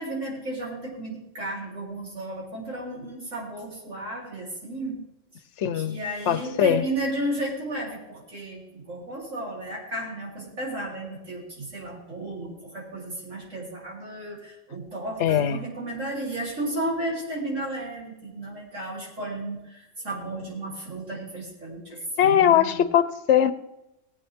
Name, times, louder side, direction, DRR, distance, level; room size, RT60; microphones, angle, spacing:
voice 1, 0.0-5.0 5.7-22.8, right 1 dB, 85° right, -4 dB, 4.1 m, -33 dB
voice 2, 5.6-6.0 6.3-6.8 15.2-15.6 22.2-23.5, left 10 dB, 70° left, 13 dB, 1.0 m, -21 dB
19.5 x 8.4 x 3.6 m, 0.92 s
omnidirectional pair, 1.3 m